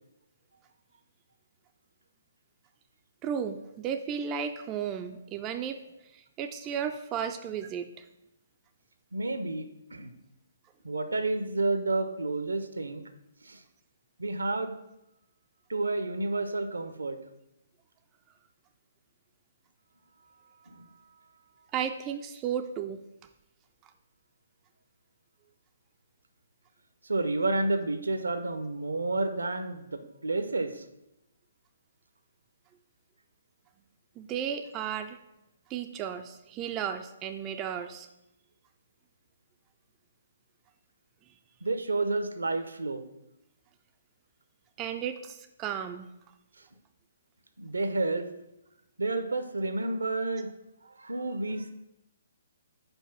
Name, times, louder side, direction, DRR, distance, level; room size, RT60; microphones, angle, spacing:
voice 1, 3.2-5.8 6.1-7.9 21.7-23.0 34.2-35.2 35.7-38.1 44.8-46.1, right 8 dB, 20° right, 7 dB, 0.3 m, -34 dB
voice 2, 9.1-9.7 9.9-10.1 10.8-13.0 13.4-13.6 14.2-14.7 15.7-17.2 20.7-20.9 27.0-30.9 41.6-43.0 46.6-46.7 47.6-48.3 49.0-50.5 50.8-51.7, right 2 dB, 75° right, 9 dB, 0.7 m, -30 dB
5.3 x 4.4 x 5.9 m, 0.88 s
figure-of-eight pair, 130°, 0 cm